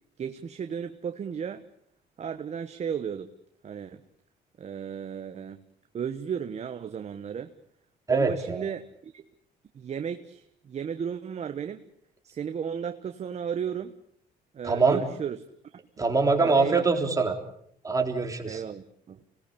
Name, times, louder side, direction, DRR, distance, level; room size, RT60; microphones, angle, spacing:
voice 1, 0.2-1.6 2.2-3.3 3.6-4.0 4.6-5.6 5.9-7.5 8.1-9.2 9.7-11.8 12.2-13.9 14.5-15.4 15.7-15.8 16.4-16.8 18.5-19.2, right 7 dB, 40° right, 8 dB, 1.3 m, -34 dB
voice 2, 8.1-8.6 14.6-15.0 16.0-17.4 17.8-18.6, right 4 dB, 20° right, 4 dB, 3.8 m, -23 dB
26.0 x 19.0 x 8.6 m, 0.69 s
cardioid pair, 110°, 17 cm